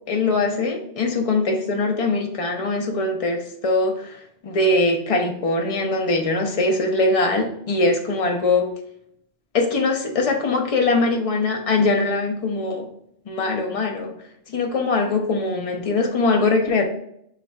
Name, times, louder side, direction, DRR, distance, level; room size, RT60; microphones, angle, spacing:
voice 1, 0.1-8.7 9.5-12.9 13.3-14.1 14.5-16.9, left 3 dB, 45° left, 3 dB, 0.5 m, -22 dB
3.1 x 2.4 x 4.4 m, 0.71 s
omnidirectional pair, 1.2 m